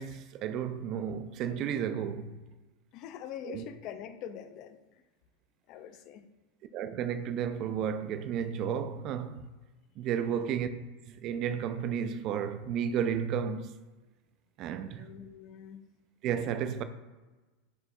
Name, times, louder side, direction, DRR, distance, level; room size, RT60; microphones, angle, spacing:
voice 1, 0.0-2.4 3.4-3.6 6.7-9.4 10.0-10.7 11.0-13.8 14.6-15.1 16.2-16.8, right 8 dB, 45° right, 0.3 m, -32 dB
voice 2, 2.9-5.0 5.7-6.3 10.2-10.5 14.9-15.8, left 9 dB, 45° left, 0.3 m, -44 dB
4.5 x 3.4 x 3.1 m
figure-of-eight pair, 85°, 0 cm